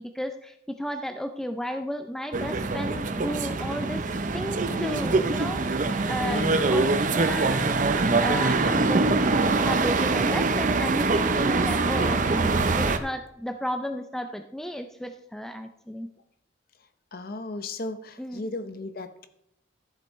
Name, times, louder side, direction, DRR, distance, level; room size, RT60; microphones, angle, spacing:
voice 1, 0.0-5.8 6.1-7.7 8.2-16.1 18.2-18.5, equal, ahead, 7 dB, 0.4 m, -34 dB
Tbilisi traffic ambience and children playing, 2.3-13.0, right 3 dB, 40° right, 0.6 m, -24 dB
voice 2, 6.2-6.6 17.1-19.3, left 2 dB, 50° left, 9 dB, 0.8 m, -34 dB
13.5 x 7.7 x 3.1 m, 0.76 s
head